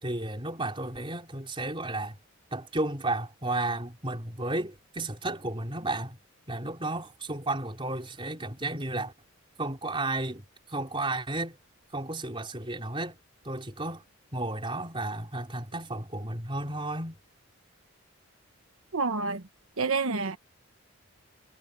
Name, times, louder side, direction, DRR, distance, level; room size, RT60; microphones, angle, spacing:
voice 1, 0.0-2.2 2.5-6.2 6.5-9.1 9.6-11.6 11.9-13.2 13.4-14.0 14.3-17.2, right 2 dB, 25° right, 4.1 m, -33 dB
voice 2, 18.9-19.4 19.8-20.4, right 4 dB, 80° right, 1.1 m, -28 dB
head